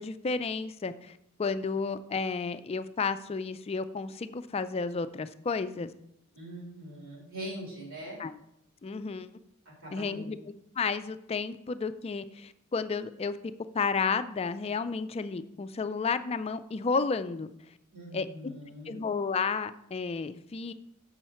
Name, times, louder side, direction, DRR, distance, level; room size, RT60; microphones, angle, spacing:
voice 1, 0.0-5.9 8.2-8.3 8.8-9.3 9.9-10.4 10.8-13.4 13.7-17.5 18.1-18.3 18.9-20.7, left 4 dB, 30° left, 12 dB, 0.3 m, -32 dB
voice 2, 6.3-8.2 9.6-10.3 17.9-19.0, equal, 75° right, -3 dB, 3.2 m, -42 dB
6.9 x 6.3 x 4.3 m, 0.77 s
head